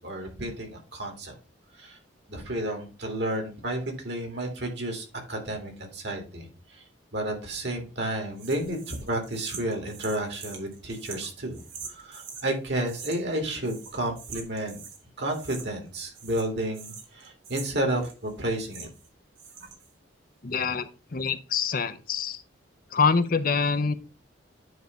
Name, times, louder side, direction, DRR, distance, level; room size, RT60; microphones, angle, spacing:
voice 1, 0.0-1.3 1.8-2.0 2.3-6.8 7.1-14.8 15.2-18.9, right 1 dB, 55° right, 3 dB, 2.3 m, -31 dB
sound 1, 8.4-12.5 12.9-13.4 13.6-15.0 15.3-19.1 19.4-19.9, right 6 dB, 80° right, 2.0 m, -44 dB
voice 2, 20.4-22.4 22.9-23.9, left 5 dB, 45° left, 12 dB, 0.6 m, -25 dB
9.4 x 3.3 x 5.1 m, 0.32 s
head